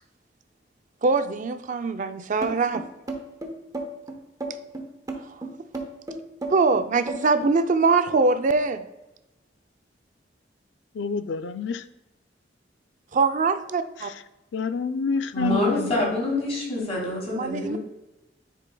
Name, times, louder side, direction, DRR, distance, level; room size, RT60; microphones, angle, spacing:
voice 1, 1.0-2.9 5.1-5.5 6.5-8.8 13.1-14.1 17.3-17.8, right 4 dB, 45° right, 0.4 m, -23 dB
sound 1, 2.4-7.6, right 2 dB, 20° right, 0.8 m, -33 dB
voice 2, 10.9-11.9 14.0-14.2 14.5-16.0, left 5 dB, 75° left, 0.4 m, -28 dB
voice 3, 15.3-17.8, left 1 dB, 35° left, 2.3 m, -26 dB
9.8 x 4.7 x 2.2 m
head